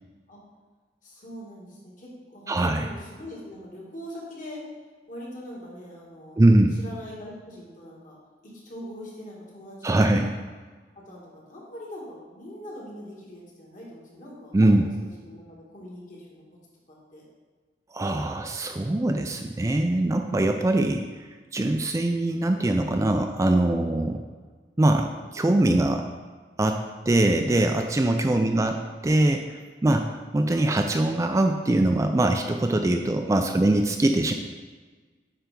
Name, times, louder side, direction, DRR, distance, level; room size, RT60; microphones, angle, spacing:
voice 1, 1.0-4.6 5.1-6.4 6.7-8.2 8.4-10.5 11.1-16.4 16.9-17.2 28.2-28.8, equal, 50° left, -4 dB, 2.1 m, -42 dB
voice 2, 2.5-2.9 6.4-6.8 9.8-10.3 14.5-14.8 17.9-21.0 21.5-24.2 24.8-25.1 25.3-26.1 26.6-28.7 29.0-30.1 30.3-34.3, right 1 dB, 20° right, 5 dB, 0.3 m, -22 dB
9.1 x 3.4 x 5.2 m, 1.4 s
head